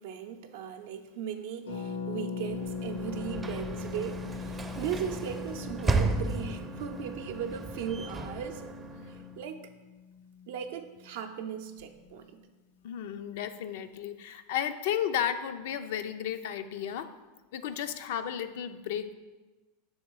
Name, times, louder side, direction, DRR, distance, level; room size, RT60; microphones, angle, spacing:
voice 1, 0.0-8.7 9.1-9.7 10.5-12.5, right 8 dB, 65° right, 7 dB, 0.5 m, -38 dB
Harp, 1.6-11.3 11.5-11.6 11.8-12.1, left 6 dB, 80° left, 0.8 m, -40 dB
Sliding door / Slam, 2.5-9.5, right 3 dB, 20° right, 0.5 m, -34 dB
voice 2, 12.8-17.1 17.5-19.1, left 9 dB, 65° left, 9 dB, 0.4 m, -33 dB
6.2 x 3.5 x 4.7 m, 1.2 s
hypercardioid pair, 90°, 0 cm